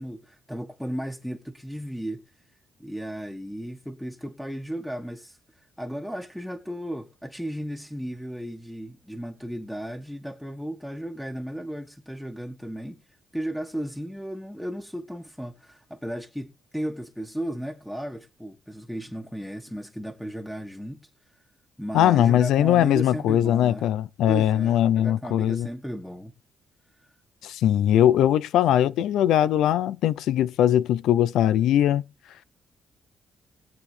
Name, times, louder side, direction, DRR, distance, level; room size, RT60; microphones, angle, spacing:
voice 1, 0.0-2.2 2.8-21.4 21.8-23.9 24.3-26.3 26.9-27.1, equal, ahead, 1.4 m, -35 dB
voice 2, 21.9-25.7 27.4-32.0, left 11 dB, 90° left, 0.7 m, -21 dB
20.5 x 8.5 x 3.5 m
cardioid pair, 120°, 0 cm